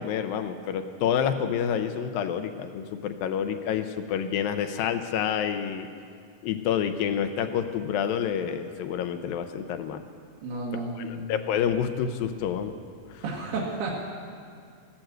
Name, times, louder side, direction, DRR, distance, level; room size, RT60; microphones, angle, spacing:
voice 1, 0.0-5.9 6.4-10.0 11.0-12.7 13.1-13.2, left 8 dB, 80° left, 8 dB, 2.4 m, -28 dB
voice 2, 10.4-11.2 13.2-14.0, right 3 dB, 90° right, -4 dB, 3.7 m, -32 dB
14.5 x 11.5 x 7.7 m, 2.2 s
omnidirectional pair, 4.3 m